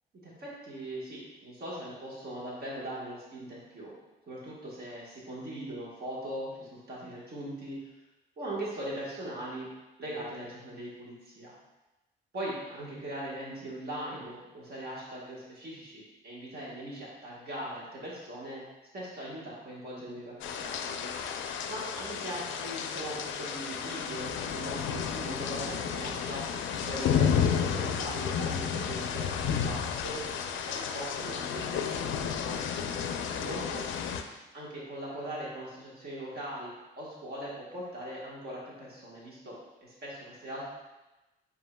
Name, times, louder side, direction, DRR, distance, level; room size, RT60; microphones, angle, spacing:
voice 1, 0.2-3.9 4.3-7.9 8.4-9.7 10.0-11.5 12.3-18.6 18.9-21.1 21.7-26.4 26.7-30.2 30.7-32.6 33.3-33.8 34.5-40.7, right 1 dB, 50° right, -5 dB, 1.4 m, -40 dB
sound 1, 20.4-34.2, left 7 dB, 75° left, 0.4 m, -32 dB
7.4 x 2.7 x 2.2 m, 1.0 s
cardioid pair, 90°, 20 cm